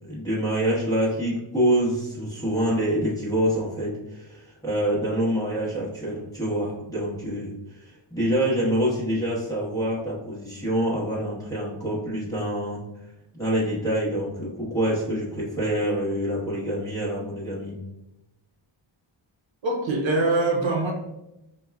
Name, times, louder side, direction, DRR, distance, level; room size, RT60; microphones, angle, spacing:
voice 1, 0.1-12.8 13.4-17.8, right 1 dB, 5° left, -7 dB, 1.0 m, -26 dB
voice 2, 19.6-20.9, right 2 dB, 65° right, 0 dB, 0.7 m, -23 dB
5.1 x 2.3 x 2.2 m, 0.92 s
wide cardioid pair, 155°, 49 cm